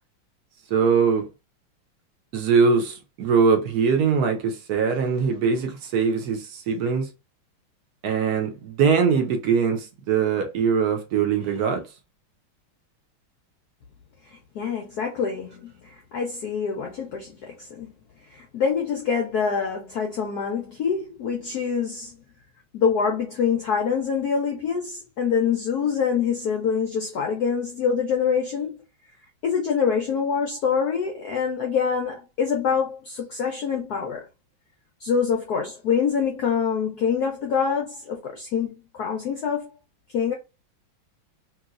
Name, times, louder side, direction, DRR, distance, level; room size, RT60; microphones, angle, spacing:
voice 1, 0.7-1.3 2.3-7.1 8.0-11.9, right 5 dB, 70° right, 0.9 m, -22 dB
voice 2, 14.3-17.9 18.3-22.2 22.7-28.8 29.4-34.3 35.0-39.7 40.1-40.3, left 6 dB, 75° left, 0.9 m, -25 dB
3.0 x 2.9 x 2.4 m
omnidirectional pair, 2.3 m